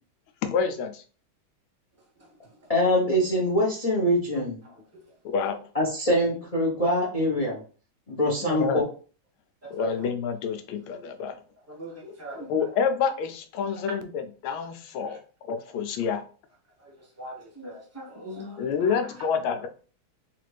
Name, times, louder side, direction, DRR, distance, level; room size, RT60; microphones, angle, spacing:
voice 1, 0.4-1.0 5.3-5.6 8.4-8.8 9.7-11.4 12.4-15.2 15.5-16.2 18.6-19.7, left 6 dB, 90° left, 1.4 m, -28 dB
voice 2, 2.7-4.6 5.7-7.6 8.1-8.8, equal, 55° left, 0.4 m, -24 dB
voice 3, 9.6-9.9 11.7-12.7 17.2-18.6, left 1 dB, 20° right, 0.3 m, -39 dB
4.0 x 2.5 x 3.2 m
omnidirectional pair, 2.2 m